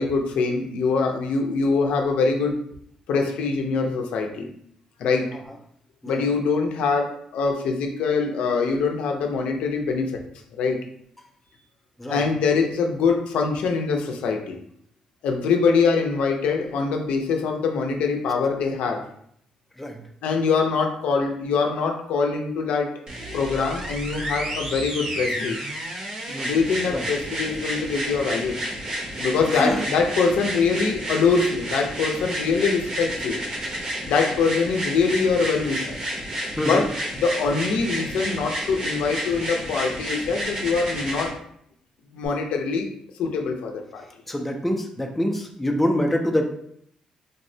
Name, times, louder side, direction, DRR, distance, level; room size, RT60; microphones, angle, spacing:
voice 1, 0.0-2.6 3.1-4.5 5.0-5.4 6.0-10.2 10.6-10.8 12.1-14.6 15.2-19.1 20.2-23.0 23.3-25.6 26.4-28.6 29.2-33.4 34.1-36.0 36.6-36.9 37.2-41.4 42.1-42.9 43.2-44.1, left 4 dB, 80° left, 3 dB, 0.4 m, -23 dB
sound 1, 23.1-41.3 42.3-42.4, equal, 40° right, 0.7 m, -31 dB
voice 2, 29.5-29.8 36.6-36.8 44.3-46.5, equal, 5° left, 2 dB, 0.3 m, -25 dB
3.4 x 2.1 x 2.6 m, 0.68 s
cardioid pair, 150°, 2 cm